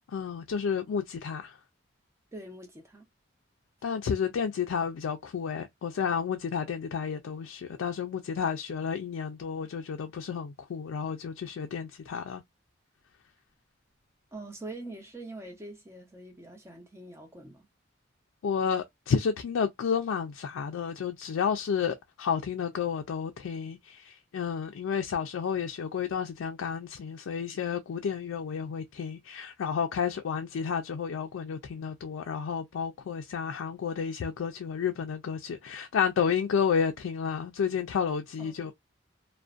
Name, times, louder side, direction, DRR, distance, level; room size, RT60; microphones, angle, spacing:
voice 1, 0.1-1.6 3.8-12.4 18.4-38.7, left 6 dB, 85° left, 0.3 m, -31 dB
voice 2, 2.3-3.0 14.3-17.7 38.4-38.7, right 2 dB, 15° right, 0.6 m, -44 dB
2.4 x 2.1 x 2.3 m
head